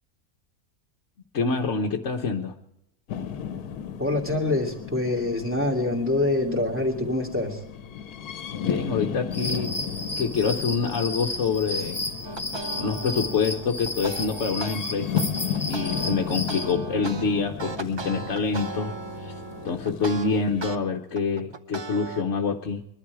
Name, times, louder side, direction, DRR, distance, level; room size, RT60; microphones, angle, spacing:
voice 1, 1.3-2.5 8.6-9.8 10.2-12.1 12.8-15.3 15.7-18.9 19.2-19.3 19.6-22.8, left 5 dB, 55° left, 1 dB, 1.2 m, -26 dB
sound 1, 3.1-20.8, left 8 dB, 85° left, 1.3 m, -35 dB
voice 2, 4.0-7.6, left 2 dB, 10° right, 0 dB, 2.5 m, -25 dB
sound 2, 9.3-16.7, left 2 dB, 15° left, 1.6 m, -33 dB
sound 3, 12.2-14.8 15.2-20.8 21.2-22.2, right 2 dB, 35° right, 0.4 m, -36 dB
21.5 x 12.0 x 4.8 m, 0.81 s
omnidirectional pair, 1.6 m